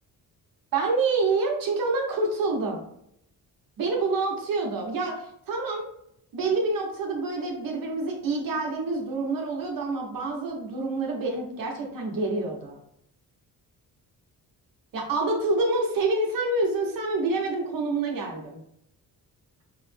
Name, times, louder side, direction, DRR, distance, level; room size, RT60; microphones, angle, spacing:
voice 1, 0.7-2.8 3.8-5.9 6.3-12.8 14.9-18.6, right 3 dB, 65° right, 0 dB, 0.9 m, -27 dB
4.8 x 2.0 x 3.2 m, 0.73 s
wide cardioid pair, 180°, 36 cm